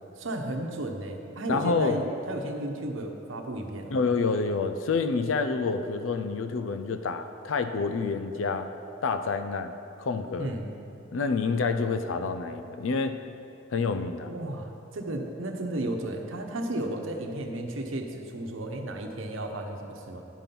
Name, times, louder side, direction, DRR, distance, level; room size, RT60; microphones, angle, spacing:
voice 1, 0.2-4.0 10.4-10.7 14.3-20.2, right 1 dB, 85° right, 3 dB, 1.0 m, -33 dB
voice 2, 1.5-2.0 3.9-8.7 9.0-10.5 11.1-13.2 13.7-14.3, left 4 dB, 80° left, 9 dB, 0.5 m, -28 dB
10.5 x 5.3 x 5.9 m, 2.9 s
head